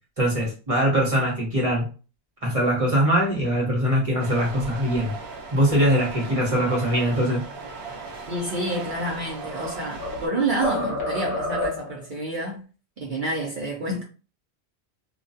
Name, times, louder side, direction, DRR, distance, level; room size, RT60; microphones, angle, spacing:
voice 1, 0.2-1.9 2.4-5.1 5.5-7.4, equal, 35° right, 1.0 m, -22 dB
sound 1, 4.2-10.3, right 4 dB, 70° right, 1.0 m, -37 dB
voice 2, 8.3-12.6 13.0-14.0, right 2 dB, 55° right, 0.7 m, -28 dB
sound 2, 9.0-10.3 10.6-12.0, left 2 dB, 50° left, 1.0 m, -29 dB
2.4 x 2.2 x 2.5 m
omnidirectional pair, 1.1 m